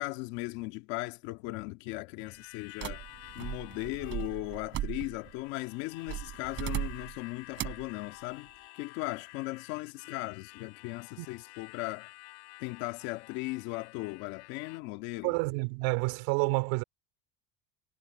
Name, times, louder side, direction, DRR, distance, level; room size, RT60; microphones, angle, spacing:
voice 1, 0.0-3.0 3.3-12.1 12.6-15.4, left 21 dB, 65° left, 1.9 m, -38 dB
Harmonica, 2.2-14.8, left 29 dB, 90° left, 5.4 m, -51 dB
sound 1, 2.8-5.4 6.1-7.2 7.6-7.9, right 13 dB, 40° right, 3.9 m, -37 dB
voice 2, 15.2-16.8, right 27 dB, 75° right, 3.4 m, -29 dB
cardioid pair, 170°, 31 cm